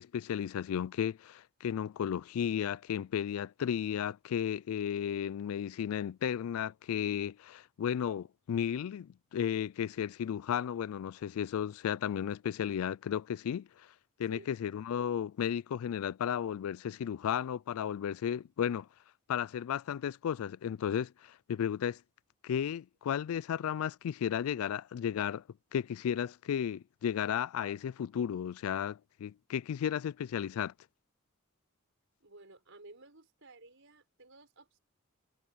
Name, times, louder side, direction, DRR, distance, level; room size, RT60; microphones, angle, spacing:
voice 1, 0.0-13.7 14.2-18.9 19.3-22.0 22.4-25.4 25.7-30.7, left 8 dB, 80° left, 0.3 m, -34 dB
voice 2, 32.2-34.8, right 2 dB, 65° right, 6.0 m, -54 dB
head